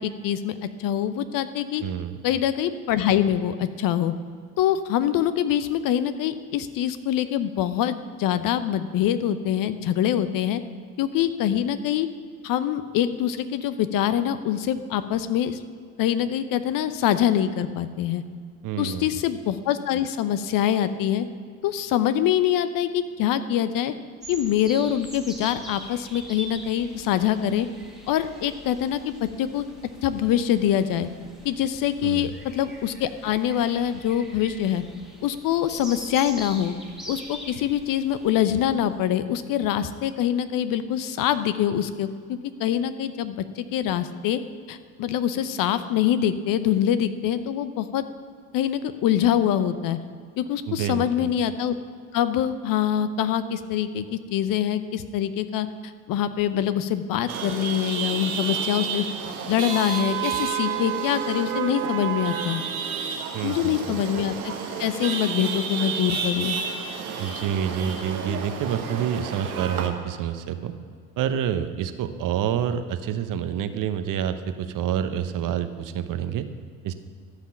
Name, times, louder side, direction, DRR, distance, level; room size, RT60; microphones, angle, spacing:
voice 1, 0.0-1.8 2.2-4.1 4.6-10.6 11.0-12.1 12.4-15.6 16.0-18.2 18.8-21.3 21.6-23.9 24.3-27.7 28.1-29.7 30.0-31.1 31.4-34.8 35.2-36.7 37.1-44.4 44.7-48.0 48.5-50.0 50.4-51.7 52.1-55.7 56.1-62.6 63.4-64.5 64.8-66.6, left 10 dB, 50° left, 12 dB, 0.8 m, -24 dB
voice 2, 1.8-2.2 18.6-19.1 32.0-32.3 50.7-51.3 63.3-64.0 67.2-70.7 71.2-76.5 76.8-76.9, right 9 dB, 50° right, 10 dB, 0.9 m, -28 dB
sound 1, 24.2-39.0, right 1 dB, ahead, 2.1 m, -43 dB
Chatter / Vehicle horn car horn honking / Traffic noise roadway noise, 57.3-69.9, right 7 dB, 85° right, 1.2 m, -30 dB
13.5 x 5.8 x 7.3 m, 2.1 s
hypercardioid pair, 65°, 42 cm